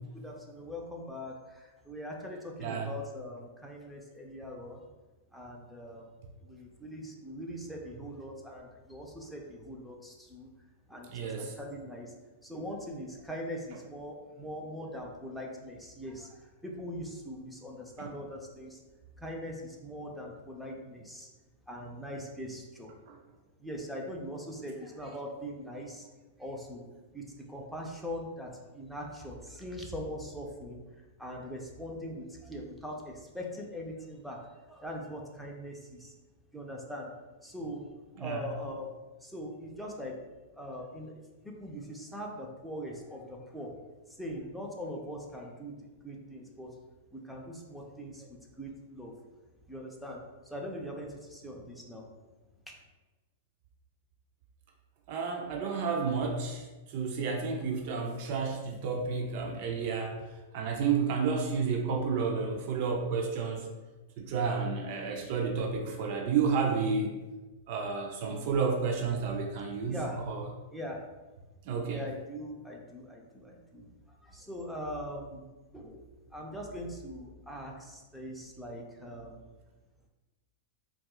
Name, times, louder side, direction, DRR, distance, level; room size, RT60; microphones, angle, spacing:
voice 1, 0.2-4.9 5.3-6.1 6.4-10.5 10.9-12.1 12.4-18.8 19.2-21.3 21.7-22.9 23.6-26.1 26.4-26.9 27.1-36.1 36.5-37.1 37.4-38.9 39.2-40.1 40.5-41.2 41.4-43.8 44.1-45.7 46.0-46.7 47.1-49.1 49.7-50.2 50.4-52.0 52.7-52.8 69.8-70.2 70.7-71.0 71.8-73.9 74.2-75.5 75.7-76.0 76.3-79.4, equal, ahead, -1 dB, 0.5 m, -41 dB
voice 2, 11.1-11.5 18.0-18.1 23.1-23.2 38.2-38.4 55.1-60.2 60.5-63.7 64.2-67.1 67.7-70.5 71.7-72.0, right 5 dB, 50° right, 1 dB, 0.4 m, -31 dB
4.1 x 2.4 x 2.3 m, 1.2 s
hypercardioid pair, 135°, 0 cm